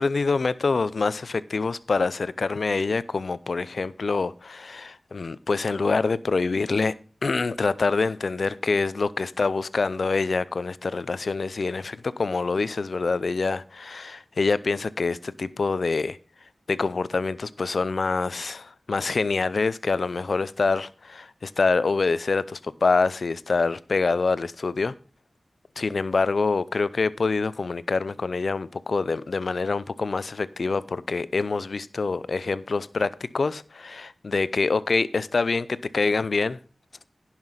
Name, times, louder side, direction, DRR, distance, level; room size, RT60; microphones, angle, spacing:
voice 1, 0.0-6.9 7.2-16.2 16.7-24.9 25.8-36.6, left 4 dB, 75° left, 0.5 m, -25 dB
10.5 x 5.8 x 5.6 m
cardioid pair, 40°, 0 cm